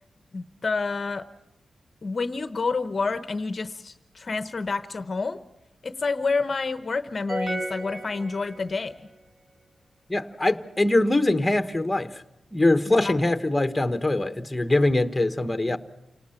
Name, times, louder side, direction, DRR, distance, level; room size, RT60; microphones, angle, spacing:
voice 1, 0.3-1.3 2.0-5.4 5.8-9.1 12.9-13.1, left 4 dB, 40° left, 0.8 m, -29 dB
sound 1, 7.3-9.0, right 1 dB, 40° right, 5.2 m, -33 dB
voice 2, 10.1-12.2 12.5-15.8, left 2 dB, 15° left, 1.2 m, -23 dB
28.5 x 19.0 x 5.8 m
wide cardioid pair, 105°, 0 cm